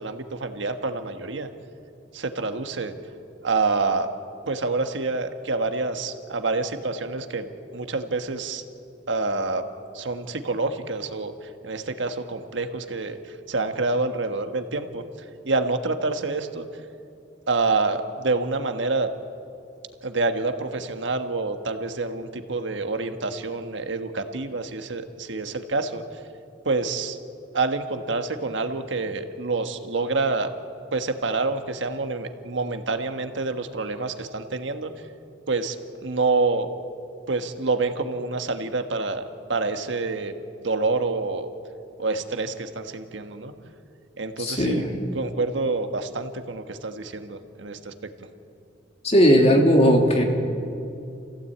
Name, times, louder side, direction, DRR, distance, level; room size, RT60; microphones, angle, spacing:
voice 1, 0.0-1.5 2.1-2.9 3.4-4.1 4.5-8.6 9.1-9.6 9.9-15.0 15.4-16.7 17.5-19.1 20.0-26.0 26.6-27.2 27.5-30.5 30.9-34.9 35.5-35.8 36.0-36.7 37.3-40.3 40.6-41.5 42.0-43.5 44.2-44.8 45.1-47.9, right 3 dB, 80° right, 7 dB, 1.4 m, -27 dB
voice 2, 44.4-44.8 49.0-50.2, equal, 35° left, 1 dB, 3.1 m, -17 dB
28.5 x 16.0 x 8.5 m, 2.6 s
head